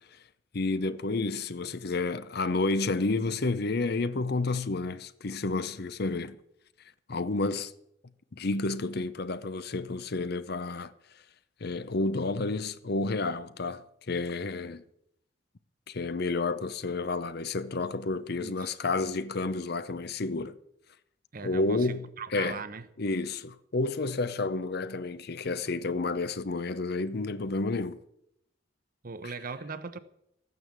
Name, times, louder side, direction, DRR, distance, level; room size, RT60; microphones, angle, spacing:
voice 1, 0.5-6.4 7.1-7.7 8.3-10.9 11.6-14.8 15.9-20.6 21.4-22.6 23.0-28.0, left 3 dB, 55° left, 0.7 m, -30 dB
voice 2, 21.3-22.8 29.0-30.0, right 4 dB, 50° right, 0.9 m, -39 dB
14.0 x 9.7 x 7.4 m
head